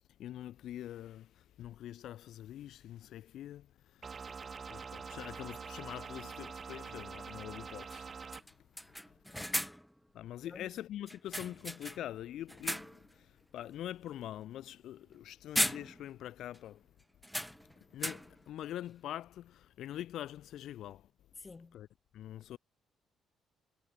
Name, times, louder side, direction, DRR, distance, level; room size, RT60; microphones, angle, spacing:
voice 1, 0.2-3.7 3.9-4.0 4.7-8.1 10.1-16.8 17.9-21.1 21.7-21.9 22.1-22.6, left 12 dB, 75° left, 2.4 m, -44 dB
sound 1, 4.0-8.4, right 5 dB, 40° right, 2.7 m, -45 dB
sound 2, 4.7-4.8 6.9-7.0 7.4-7.5 7.9-8.1 8.3-10.0 11.1-12.2 12.5-13.1 13.6-13.8 15.0-15.2 15.6-16.3 16.5-16.6 17.2-18.5, equal, ahead, 0.9 m, -38 dB
voice 2, 9.3-9.7 10.4-10.7 21.4-21.8, left 4 dB, 30° left, 4.3 m, -51 dB
cardioid pair, 90°, 0 cm